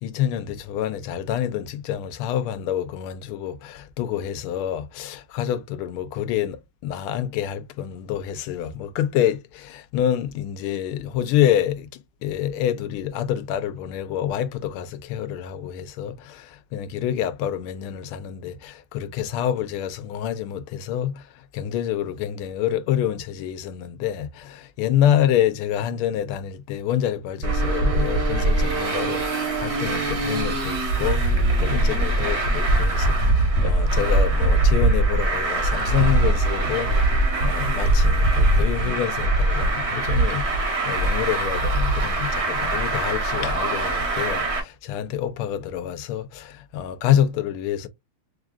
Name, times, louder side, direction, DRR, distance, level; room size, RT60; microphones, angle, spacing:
voice 1, 0.0-11.9 12.2-21.3 21.5-40.6 40.9-47.9, left 10 dB, 80° left, 1.5 m, -27 dB
Traffic noise roadway noise, 27.4-44.6, right 2 dB, 45° right, 0.9 m, -22 dB
5.7 x 2.4 x 2.3 m
omnidirectional pair, 2.4 m